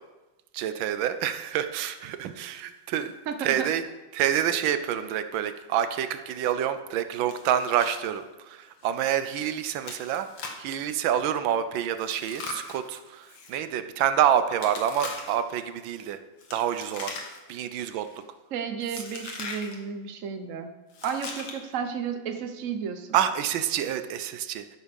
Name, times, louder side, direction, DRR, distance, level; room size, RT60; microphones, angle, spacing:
voice 1, 0.5-3.1 3.4-3.8 4.1-10.3 10.6-16.2 16.5-17.1 17.5-18.1 23.1-24.8, right 10 dB, 90° right, 10 dB, 1.4 m, -27 dB
voice 2, 3.3-3.7 18.5-20.7 21.0-23.2, right 7 dB, 50° right, 6 dB, 1.1 m, -32 dB
Chewing mastication, 7.3-7.9 8.2-8.3 8.8-9.0 9.8-10.7 12.0-13.5 14.6-15.5 16.4-17.6 17.8-18.2 18.9-19.7 20.9-21.7, left 4 dB, 75° left, 2.1 m, -40 dB
12.5 x 6.3 x 5.2 m, 1.1 s
omnidirectional pair, 2.1 m